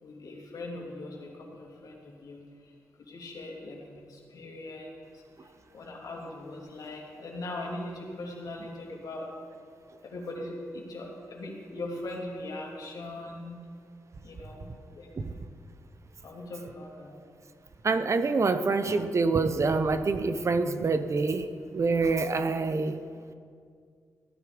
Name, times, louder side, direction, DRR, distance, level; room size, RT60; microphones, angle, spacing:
voice 1, 0.0-2.7 3.0-9.3 10.0-13.6 14.2-15.1 16.2-17.1, left 2 dB, 70° left, -1 dB, 2.8 m, -40 dB
voice 2, 17.8-23.0, right 3 dB, 50° right, 10 dB, 0.8 m, -26 dB
15.0 x 10.0 x 5.2 m, 2.1 s
supercardioid pair, 55°, 7 cm